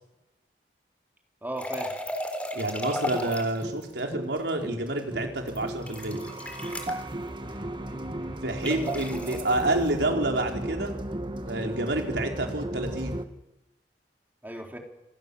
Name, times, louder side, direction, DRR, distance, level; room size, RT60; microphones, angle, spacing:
voice 1, 1.4-1.9 7.4-8.6 14.4-14.8, right 1 dB, 10° right, 2 dB, 4.0 m, -39 dB
sound 1, 1.6-3.6 5.5-7.0 8.6-9.7, left 1 dB, 10° left, 3.9 m, -34 dB
voice 2, 2.5-6.2 8.4-10.9 11.4-13.2, right 2 dB, 80° right, 2 dB, 4.6 m, -28 dB
sound 2, 3.0-13.2, right 1 dB, 30° right, 1.5 m, -35 dB
27.5 x 25.0 x 7.2 m, 0.96 s
head